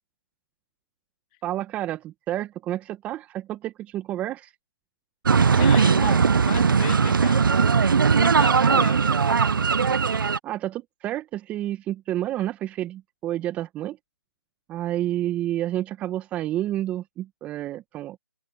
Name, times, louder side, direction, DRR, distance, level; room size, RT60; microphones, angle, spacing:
voice 1, 1.4-4.5 10.4-14.0 14.7-18.2, right 13 dB, 10° right, 1.3 m, -30 dB
sound 1, 5.3-10.4, right 5 dB, 55° right, 0.8 m, -19 dB
voice 2, 5.5-7.8 8.1-9.2, left 23 dB, 20° left, 2.6 m, -37 dB
open air
figure-of-eight pair, 155°, 13 cm